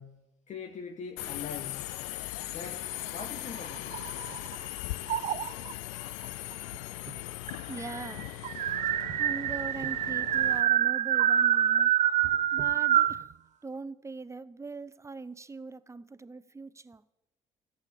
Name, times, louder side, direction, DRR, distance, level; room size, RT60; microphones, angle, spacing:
voice 1, 0.0-2.0 2.5-4.0, left 6 dB, 55° left, 4 dB, 1.3 m, -42 dB
Subway metro underground, 1.2-10.6, left 18 dB, 85° left, 0.4 m, -39 dB
sound 1, 3.1-4.6 5.1-5.7 6.7-6.8 7.1-7.2 7.5-13.2, right 10 dB, 55° right, 0.5 m, -26 dB
voice 2, 7.7-8.3 9.1-11.9 12.5-13.3 13.6-17.0, right 3 dB, 20° right, 16 dB, 0.8 m, -41 dB
14.5 x 8.6 x 7.8 m, 1.0 s
hypercardioid pair, 60°, 15 cm